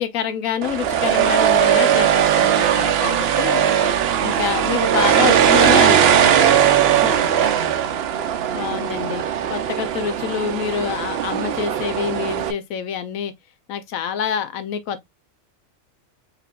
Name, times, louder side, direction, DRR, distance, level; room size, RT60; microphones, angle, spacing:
voice 1, 0.0-3.6 4.2-7.3 8.5-9.2 9.5-13.3 13.7-15.1, left 8 dB, 90° left, 1.1 m, -27 dB
sound 1, 0.6-12.5, right 9 dB, 60° right, 0.7 m, -18 dB
4.8 x 3.3 x 2.3 m
omnidirectional pair, 1.4 m